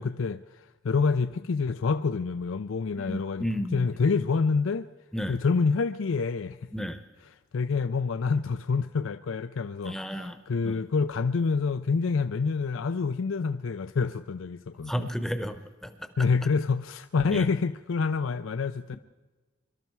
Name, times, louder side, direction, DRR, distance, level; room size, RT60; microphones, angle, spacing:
voice 1, 0.0-3.4 3.7-4.9 5.3-6.6 7.5-15.1 16.2-19.0, left 4 dB, 80° left, 0.5 m, -27 dB
voice 2, 3.0-3.9 5.1-5.4 6.7-7.0 9.8-10.8 14.8-16.3 17.3-17.5, equal, ahead, 0.8 m, -33 dB
23.5 x 13.0 x 4.6 m
head